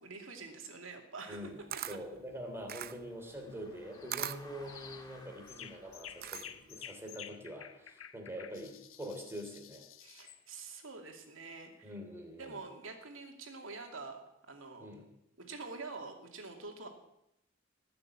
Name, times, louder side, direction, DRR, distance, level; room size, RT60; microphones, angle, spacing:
voice 1, 0.0-1.5 10.0-11.9 12.4-14.2 14.5-14.9 15.4-16.9, right 3 dB, 70° right, 3 dB, 2.6 m, -46 dB
voice 2, 1.3-1.6 1.9-9.9 11.8-12.6 14.8-15.0, equal, 10° right, 2 dB, 3.2 m, -45 dB
Camera, 1.3-6.8, right 11 dB, 50° right, 0.6 m, -43 dB
sound 1, 2.4-8.1, left 2 dB, 20° left, 2.3 m, -59 dB
sound 2, 3.9-4.3 4.7-5.1 5.5-10.4, left 10 dB, 80° left, 1.0 m, -51 dB
19.5 x 6.8 x 8.6 m, 0.83 s
head